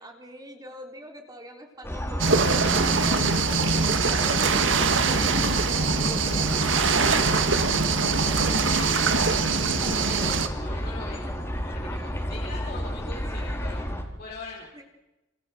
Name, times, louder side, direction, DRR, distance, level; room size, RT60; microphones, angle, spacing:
voice 1, 0.0-7.7 14.7-14.8, right 1 dB, 20° right, 3 dB, 3.7 m, -41 dB
sound 1, 1.8-14.0, equal, 15° left, 4.2 m, -31 dB
sound 2, 2.2-10.5, right 4 dB, 65° right, 2.0 m, -23 dB
voice 2, 8.0-9.5 9.8-13.9 14.2-14.7, left 3 dB, 50° left, -3 dB, 4.4 m, -41 dB
28.0 x 27.5 x 6.3 m, 0.99 s
head